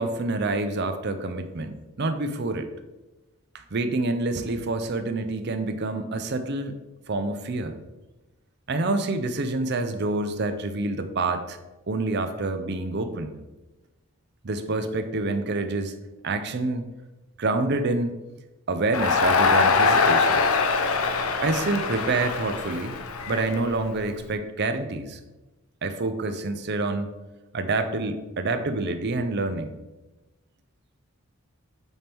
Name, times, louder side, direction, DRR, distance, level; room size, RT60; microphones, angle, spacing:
voice 1, 0.0-2.7 3.5-6.8 7.1-7.8 8.7-11.6 11.9-13.3 14.4-15.9 16.2-16.8 17.4-18.2 18.7-20.4 21.4-23.0 23.3-25.2 25.8-27.1 27.5-29.8, right 2 dB, 50° right, 9 dB, 0.6 m, -27 dB
Crowd, 18.9-24.1, left 4 dB, 75° left, 0.6 m, -23 dB
8.1 x 3.5 x 4.5 m, 1.1 s
head